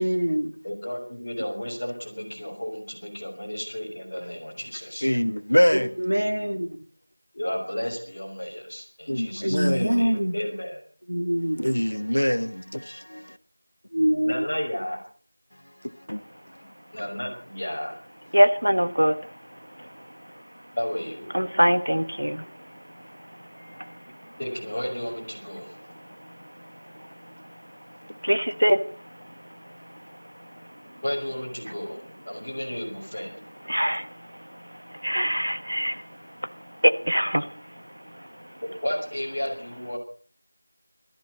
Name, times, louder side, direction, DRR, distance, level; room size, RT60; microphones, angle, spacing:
voice 1, 0.0-0.5 5.7-6.8 9.4-10.4 11.1-11.6 13.9-14.4, equal, 55° right, 2.7 m, -24 dB
voice 2, 0.6-5.1 7.3-10.8 14.2-15.0 16.9-18.0 20.8-21.4 24.4-25.7 31.0-33.3 38.6-40.0, equal, 10° left, 3.2 m, -33 dB
voice 3, 5.0-5.9 9.1-10.1 11.6-13.4 15.8-16.2, equal, 55° left, 1.3 m, -24 dB
voice 4, 18.3-19.1 21.3-22.4 28.2-28.8 33.7-34.0 35.0-35.9 37.1-37.4, equal, 75° right, 1.4 m, -22 dB
23.0 x 13.5 x 4.1 m
figure-of-eight pair, 180°, 0 cm